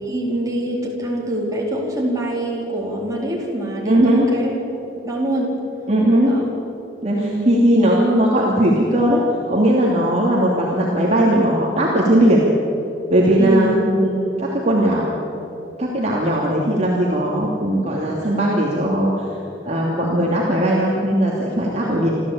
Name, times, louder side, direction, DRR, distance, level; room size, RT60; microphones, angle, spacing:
voice 1, 0.0-4.6 5.0-5.6 6.3-6.5 7.1-7.5 13.4-13.8 21.8-22.1, right 1 dB, 20° right, -3 dB, 4.4 m, -24 dB
voice 2, 3.9-4.3 5.9-6.3 7.0-7.2 7.5-9.2 9.5-12.4 13.1-15.1 15.8-19.1 19.6-22.1, right 1 dB, 35° right, -3 dB, 2.8 m, -18 dB
26.5 x 14.5 x 8.8 m, 2.9 s
head